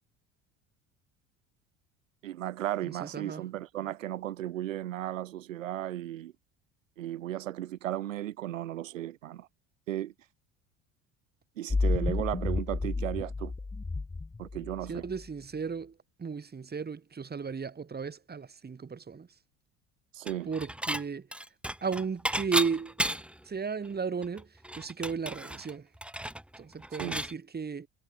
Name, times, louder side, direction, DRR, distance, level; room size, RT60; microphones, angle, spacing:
voice 1, 2.2-6.3 7.0-9.5 9.9-10.1 11.6-13.5 14.4-15.1 20.1-20.5 27.0-27.2, right 13 dB, 85° right, 2.2 m, -35 dB
voice 2, 2.8-3.4 14.9-15.9 16.2-19.3 20.5-21.3 21.8-23.0 23.5-24.5 24.7-25.9 26.6-27.9, right 5 dB, 25° right, 3.4 m, -34 dB
sound 1, 11.7-15.2, left 3 dB, 15° left, 1.3 m, -31 dB
Dishes pots and pans / Chink clink, 20.3-21.0 21.3-23.4 23.9-24.0 24.2-27.3, right 1 dB, 5° right, 2.0 m, -33 dB
hypercardioid pair, 70°, 38 cm